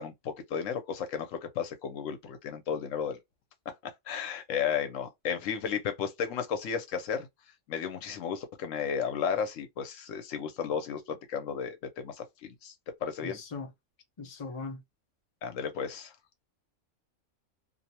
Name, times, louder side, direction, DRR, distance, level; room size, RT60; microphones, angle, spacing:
voice 1, 0.0-3.2 4.1-7.3 7.7-12.7 13.0-13.4 15.4-16.1, left 7 dB, 85° left, 1.0 m, -33 dB
voice 2, 13.2-13.7 14.2-14.8, left 4 dB, 40° left, 0.5 m, -39 dB
2.6 x 2.0 x 2.8 m
omnidirectional pair, 1.3 m